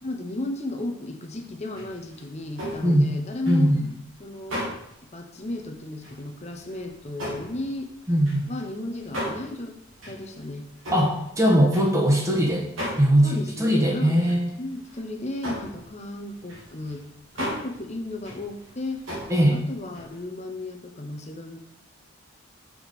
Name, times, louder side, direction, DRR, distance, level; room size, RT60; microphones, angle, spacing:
voice 1, 0.0-3.7 4.2-4.6 5.0-7.9 8.4-9.8 10.0-10.7 11.5-11.8 13.2-17.0 17.3-19.0 19.5-21.6, left 2 dB, 30° left, 3 dB, 0.9 m, -34 dB
sound 1, 1.7-5.0 5.5-5.6 6.0-6.3 6.6-12.3 12.8-13.2 13.5-13.6 14.1-14.5 14.8-15.0 15.3-20.2, equal, 65° right, 2.6 m, -36 dB
voice 2, 2.8-3.2 3.5-3.8 8.1-8.4 10.9-12.7 13.0-14.5 19.3-19.6, equal, 15° right, -1 dB, 1.3 m, -20 dB
6.3 x 4.6 x 5.3 m, 0.76 s
head